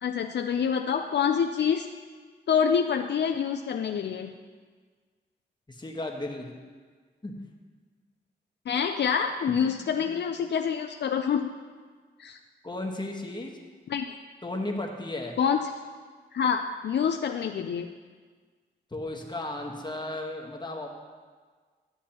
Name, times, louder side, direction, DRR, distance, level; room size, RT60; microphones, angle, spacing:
voice 1, 0.0-1.8 2.5-4.3 8.7-11.5 12.2-12.4 13.9-14.0 15.4-15.6 16.3-17.9, left 7 dB, 65° left, 5 dB, 0.4 m, -26 dB
voice 2, 5.7-6.6 7.2-7.3 9.6-9.7 10.0-10.1 12.6-13.5 14.4-15.3 18.9-20.9, left 2 dB, 25° left, 1 dB, 1.3 m, -34 dB
11.5 x 7.2 x 2.9 m, 1.5 s
cardioid pair, 60°, 19 cm